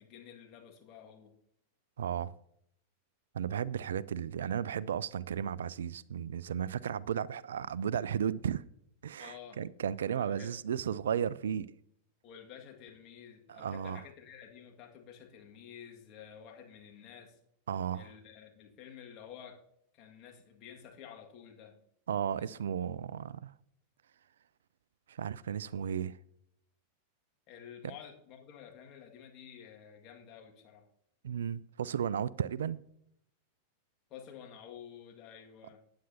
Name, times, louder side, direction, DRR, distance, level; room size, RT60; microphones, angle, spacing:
voice 1, 0.0-1.3 9.2-9.6 10.1-10.6 12.2-17.4 17.9-19.6 19.9-21.8 22.3-22.5 27.5-30.9 34.1-35.8, left 8 dB, 35° left, 1.9 m, -51 dB
voice 2, 2.0-2.3 3.3-8.6 9.0-11.7 13.5-14.0 17.7-18.1 22.1-23.5 25.1-26.2 31.2-32.8, right 8 dB, 65° right, 0.3 m, -34 dB
14.5 x 9.5 x 2.8 m
figure-of-eight pair, 90°, 0 cm